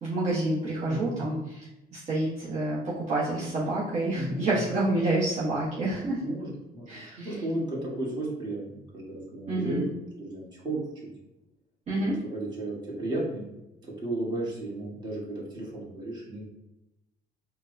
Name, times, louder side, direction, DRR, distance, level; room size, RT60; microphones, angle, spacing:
voice 1, 0.0-6.3 6.9-7.3 9.5-9.9 11.9-12.2, right 2 dB, 45° right, -8 dB, 1.0 m, -28 dB
voice 2, 0.9-1.4 4.1-4.7 6.2-6.9 7.2-11.1 11.9-13.4 13.8-16.4, right 1 dB, 25° right, -5 dB, 1.4 m, -34 dB
4.5 x 2.1 x 2.6 m, 0.93 s
cardioid pair, 110°, 17 cm